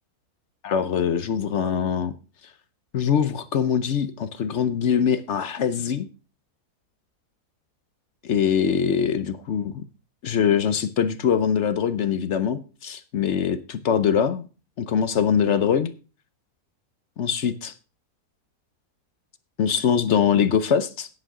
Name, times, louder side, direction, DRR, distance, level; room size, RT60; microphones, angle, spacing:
voice 1, 0.6-2.1 2.9-6.1 8.2-9.8 10.2-14.5 14.8-15.9 17.2-17.7 19.6-21.1, left 7 dB, 55° left, 13 dB, 0.9 m, -23 dB
11.0 x 9.9 x 3.7 m, 0.34 s
omnidirectional pair, 1.6 m